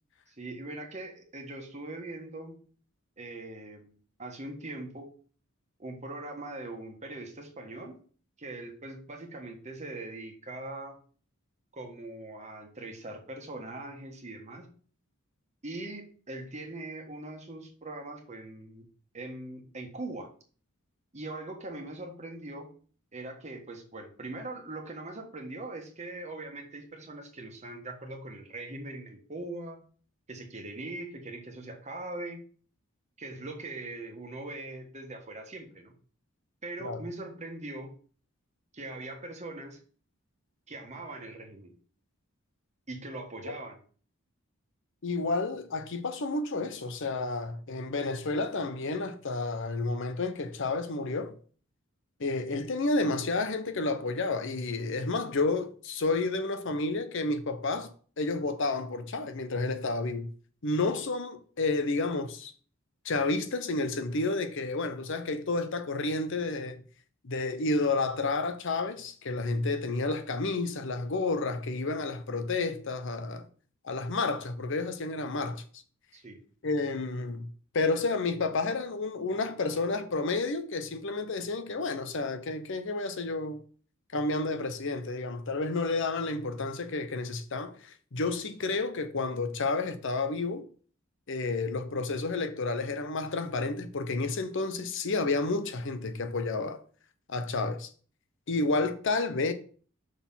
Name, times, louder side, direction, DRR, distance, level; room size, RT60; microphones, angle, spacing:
voice 1, 0.3-2.6 3.2-3.9 4.2-5.1 5.8-7.9 8.4-11.0 11.7-14.7 15.6-18.8 19.1-20.3 21.1-22.7 23.1-29.8 30.3-32.4 33.2-35.9 36.6-37.9 38.7-39.8 40.7-41.7 42.9-43.8 76.1-76.4, right 2 dB, 35° right, 1.4 m, -41 dB
voice 2, 45.0-51.4 52.2-57.9 58.2-60.3 60.6-62.5 63.0-66.8 67.2-73.5 73.8-75.6 76.6-77.5 77.7-83.6 84.1-90.6 91.3-96.8 97.3-97.9 98.5-99.5, left 3 dB, 60° left, 0.7 m, -30 dB
6.0 x 4.1 x 5.6 m
head